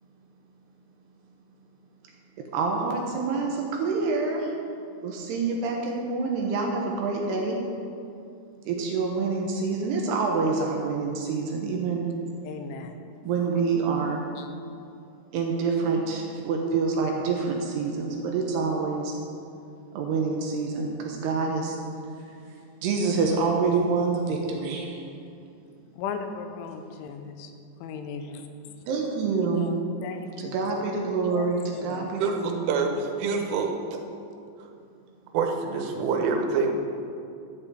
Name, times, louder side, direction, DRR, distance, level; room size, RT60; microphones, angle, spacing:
voice 1, 2.4-4.5 5.0-7.6 8.6-12.1 13.2-14.3 15.3-19.2 19.9-21.7 22.8-25.0 28.9-29.7 30.4-32.7, right 4 dB, 75° right, 1 dB, 2.6 m, -27 dB
voice 2, 12.4-13.0 14.4-14.5 25.9-27.5 27.8-28.8 29.6-30.6 31.2-32.1, left 5 dB, 85° left, 6 dB, 3.1 m, -37 dB
voice 3, 32.2-33.7 35.3-36.7, right 5 dB, 90° right, 3 dB, 3.6 m, -26 dB
12.0 x 5.4 x 8.4 m, 2.5 s
omnidirectional pair, 5.5 m